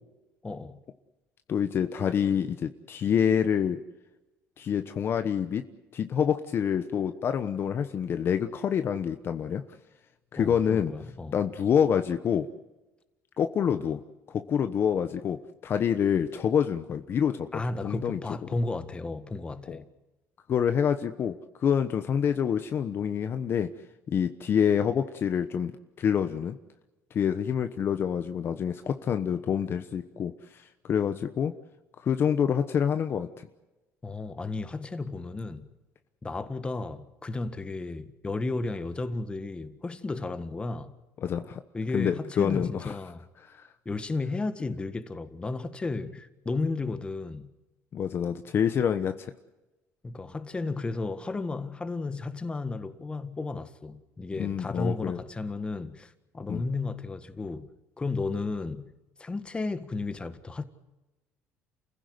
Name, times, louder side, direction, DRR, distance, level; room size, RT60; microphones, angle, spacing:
voice 1, 0.4-0.8 10.4-11.4 17.5-19.8 34.0-35.7 36.2-40.9 41.7-43.2 43.8-47.5 50.0-57.7 58.0-58.9 59.2-60.7, left 3 dB, 20° left, 1.7 m, -33 dB
voice 2, 1.5-3.8 4.6-5.6 5.9-9.6 10.3-10.9 11.3-12.5 13.4-14.0 14.3-18.2 19.7-19.8 20.5-21.3 21.6-23.7 24.1-25.7 26.0-26.6 27.1-31.5 32.0-33.5 41.2-41.6 41.9-42.9 43.4-43.7 47.9-49.3 54.4-55.2 56.5-56.7, left 8 dB, 45° left, 1.1 m, -27 dB
29.0 x 16.0 x 8.1 m
cardioid pair, 110°, 5 cm